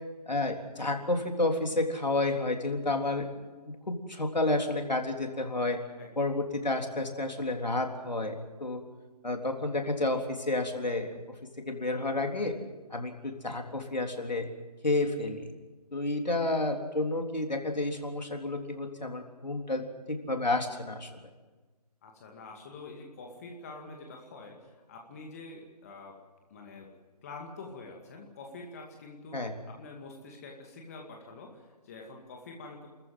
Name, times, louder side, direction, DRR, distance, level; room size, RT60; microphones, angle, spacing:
voice 1, 0.3-3.3 3.9-5.8 6.2-8.4 8.6-8.8 9.2-11.2 11.7-12.5 12.9-14.5 14.8-15.5 15.9-21.2 29.3-29.5, left 2 dB, 85° left, 3 dB, 3.6 m, -30 dB
voice 2, 6.0-6.3 16.6-16.8 22.0-26.2 26.5-26.9 27.2-29.4 29.7-32.9, left 3 dB, 20° left, 1 dB, 2.3 m, -46 dB
29.0 x 14.5 x 7.7 m, 1.3 s
figure-of-eight pair, 160°, 21 cm